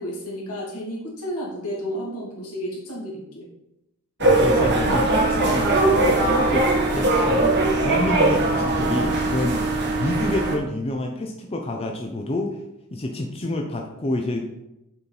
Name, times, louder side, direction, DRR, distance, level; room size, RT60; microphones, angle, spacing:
voice 1, 0.0-3.5, equal, 80° left, -4 dB, 2.3 m, -32 dB
voice 2, 4.2-7.5 7.8-9.6 9.9-12.6 12.9-14.5, left 1 dB, 25° left, 2 dB, 0.6 m, -28 dB
sound 1, 4.2-10.6, right 2 dB, 50° right, 1.3 m, -20 dB
6.7 x 4.4 x 4.0 m, 0.89 s
head